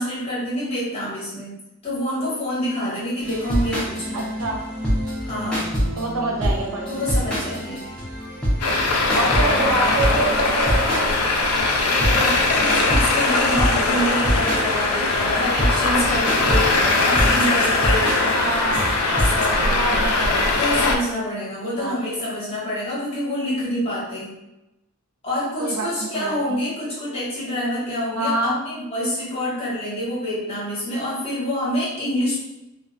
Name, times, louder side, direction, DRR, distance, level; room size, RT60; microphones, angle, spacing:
voice 1, 0.0-1.6 1.8-4.3 5.2-5.7 6.9-7.8 12.1-18.1 19.1-19.8 20.6-24.3 25.2-32.3, equal, 25° left, -8 dB, 0.8 m, -27 dB
sound 1, 3.2-19.7, equal, 5° left, 0.5 m, -26 dB
voice 2, 4.1-4.6 6.0-7.1 9.1-11.1 12.0-12.4 18.0-18.8 19.7-20.5 21.6-22.0 25.6-26.6 28.2-28.6, right 2 dB, 80° right, 1 dB, 0.5 m, -26 dB
Traffic noise roadway noise, 8.6-21.0, left 3 dB, 80° left, 0.4 m, -20 dB
2.3 x 2.2 x 2.4 m, 0.93 s
head